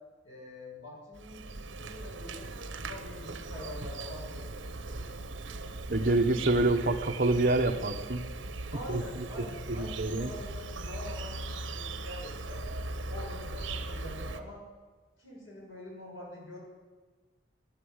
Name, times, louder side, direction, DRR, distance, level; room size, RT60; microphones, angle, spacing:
voice 1, 0.2-2.5 2.8-4.5 4.8-5.7 8.7-12.6 13.1-14.6 15.2-16.6, left 1 dB, 90° left, -3 dB, 7.1 m, -45 dB
Insect, 1.1-14.4, right 2 dB, 75° right, 1.0 m, -39 dB
voice 2, 5.9-8.2 8.9-9.2 9.8-10.3, right 2 dB, 50° right, 6 dB, 1.2 m, -27 dB
15.0 x 11.0 x 8.1 m, 1.4 s
head